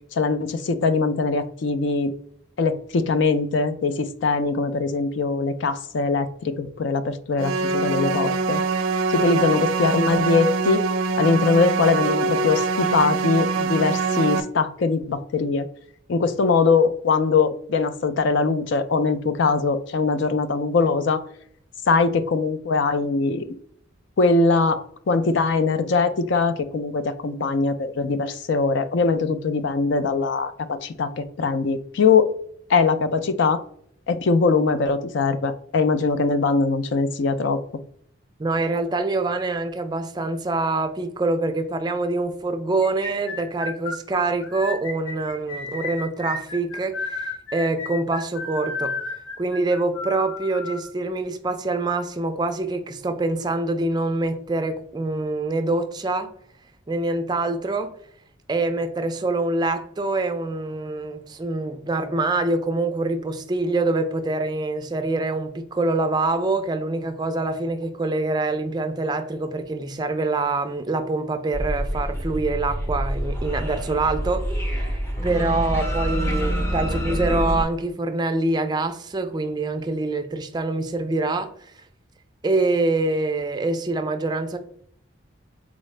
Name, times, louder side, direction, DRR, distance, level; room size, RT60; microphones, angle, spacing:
voice 1, 0.1-2.1 2.6-8.6 9.1-10.8 11.2-15.7 16.1-21.2 21.9-23.5 24.2-32.3 32.7-33.6 34.1-37.6, left 4 dB, 60° left, 10 dB, 0.4 m, -22 dB
sound 1, 7.4-14.4, right 4 dB, 80° right, 0.5 m, -24 dB
voice 2, 38.4-48.9 49.4-56.3 56.9-57.9 58.5-74.4 74.7-81.7 82.4-84.6, right 2 dB, 20° right, 7 dB, 0.3 m, -25 dB
sound 2, 42.8-50.8, left 3 dB, 80° left, 0.9 m, -32 dB
sound 3, 71.5-77.6, equal, 15° left, 0.6 m, -26 dB
4.0 x 3.7 x 3.2 m, 0.66 s
head